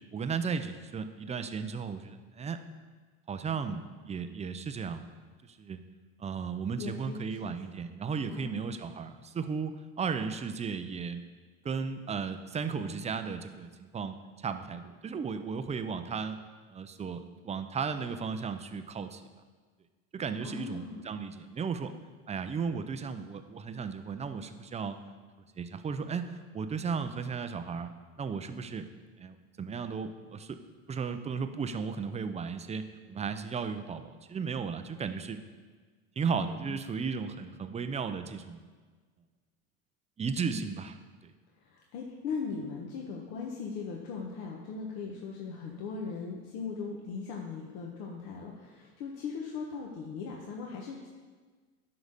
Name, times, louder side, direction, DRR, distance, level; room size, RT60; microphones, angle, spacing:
voice 1, 0.1-2.6 3.3-5.0 5.5-5.8 6.2-11.2 11.6-14.2 14.4-16.4 16.7-19.2 20.1-21.9 22.3-25.0 25.6-27.9 28.2-28.9 29.2-30.6 30.9-32.8 33.1-35.4 36.2-38.7 40.2-40.9, right 5 dB, 15° right, 9 dB, 0.5 m, -35 dB
voice 2, 6.8-7.5 8.3-8.7 20.4-21.0 36.7-36.8 40.4-40.6 41.6-51.1, left 5 dB, 60° left, -1 dB, 1.4 m, -39 dB
11.0 x 4.0 x 6.6 m, 1.4 s
supercardioid pair, 105°, 41 cm